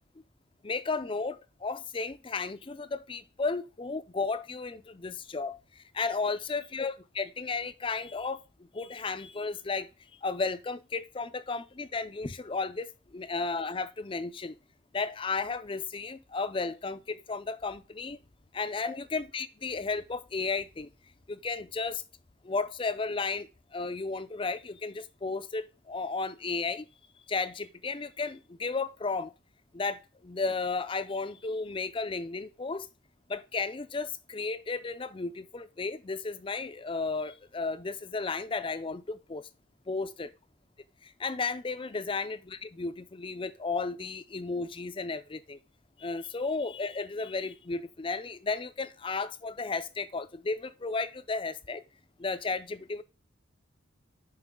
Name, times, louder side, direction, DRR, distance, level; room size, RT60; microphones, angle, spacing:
voice 1, 0.6-9.9 10.2-14.5 14.9-18.2 18.5-20.9 21.3-22.0 22.4-26.9 27.3-29.3 29.7-32.9 33.3-39.5 39.9-40.3 41.0-45.6 46.0-51.8 52.2-53.0, left 4 dB, 25° left, 0.4 m, -34 dB
9.7 x 6.0 x 3.7 m
head